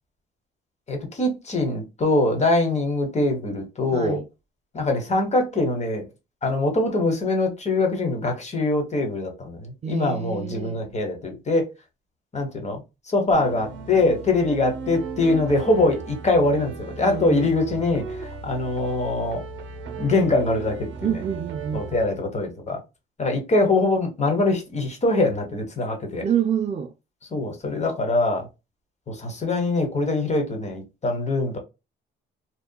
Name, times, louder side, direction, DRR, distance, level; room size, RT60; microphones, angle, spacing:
voice 1, 0.9-4.2 4.7-6.0 6.4-11.7 12.3-19.4 20.0-21.2 21.7-22.8 23.2-26.3 27.3-28.5 29.1-31.6, left 2 dB, 35° left, 1.1 m, -23 dB
voice 2, 3.9-4.3 9.8-10.8 17.0-17.5 21.0-21.9 26.2-26.9, right 8 dB, 35° right, 0.4 m, -27 dB
sound 1, 13.3-22.1, right 5 dB, 75° right, 0.8 m, -36 dB
2.9 x 2.2 x 2.2 m
cardioid pair, 90°, 20 cm